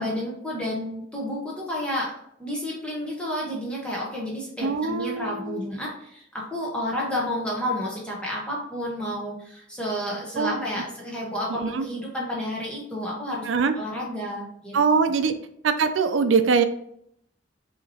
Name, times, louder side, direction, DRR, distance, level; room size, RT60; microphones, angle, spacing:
voice 1, 0.0-2.1 2.4-13.5 13.8-14.8, equal, 5° left, -4 dB, 0.9 m, -30 dB
voice 2, 4.6-5.7 10.4-10.6 11.5-11.9 13.5-13.7 14.7-15.3 15.6-16.6, right 5 dB, 80° right, 9 dB, 0.4 m, -23 dB
5.6 x 2.9 x 2.8 m, 0.72 s
head